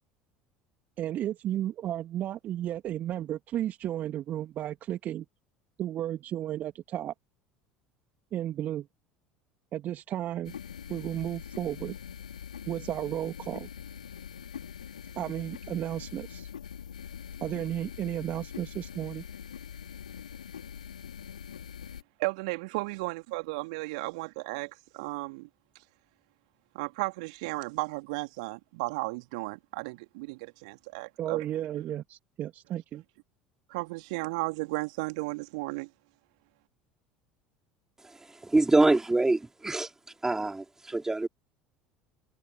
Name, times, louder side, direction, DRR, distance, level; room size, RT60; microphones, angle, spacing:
voice 1, 1.0-5.2 5.8-7.1 8.3-8.9 9.7-10.5 10.9-11.9 12.7-13.7 15.2-16.5 17.4-19.2 31.2-33.0, right 12 dB, 45° right, 2.4 m, -33 dB
sound 1, 10.4-22.0, left 8 dB, 75° left, 4.0 m, -43 dB
voice 2, 22.2-25.5 26.7-31.4 33.7-35.9, right 26 dB, 60° right, 2.7 m, -34 dB
voice 3, 38.4-39.9 40.2-41.3, right 2 dB, 10° right, 4.2 m, -25 dB
figure-of-eight pair, 65°, 4 cm